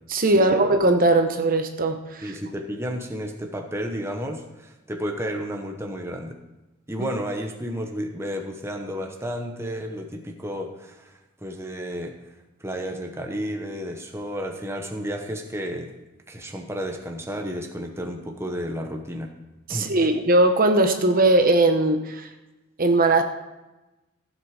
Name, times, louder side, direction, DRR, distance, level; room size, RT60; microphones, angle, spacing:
voice 1, 0.1-2.3 19.7-22.3 22.8-23.2, right 2 dB, 45° right, 6 dB, 1.0 m, -19 dB
voice 2, 2.2-6.4 6.9-12.1 12.6-15.9 16.3-19.3 19.7-19.9, equal, 10° right, 3 dB, 1.0 m, -32 dB
15.5 x 7.8 x 4.9 m, 1.0 s
head